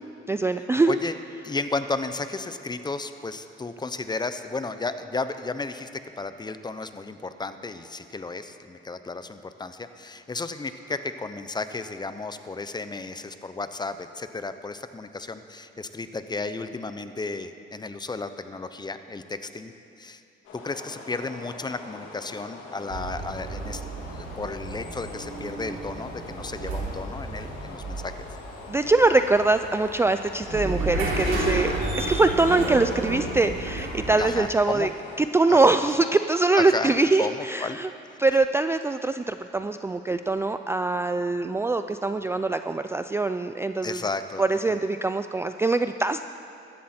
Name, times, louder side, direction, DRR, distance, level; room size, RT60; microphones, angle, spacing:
voice 1, 0.3-1.0 28.7-34.9 35.2-37.9 38.2-44.0 44.4-46.2, right 3 dB, 15° right, 9 dB, 0.3 m, -23 dB
voice 2, 1.4-19.7 20.0-20.2 20.5-28.3 34.2-34.9 35.5-35.6 36.5-36.9 37.2-37.8 43.8-44.4, left 3 dB, 20° left, 10 dB, 0.7 m, -33 dB
sound 1, 20.4-35.2, left 2 dB, 85° left, 2.8 m, -43 dB
sound 2, 22.9-34.6, right 2 dB, 85° right, 3.2 m, -31 dB
15.5 x 13.0 x 4.4 m, 2.6 s
cardioid pair, 90°, 20 cm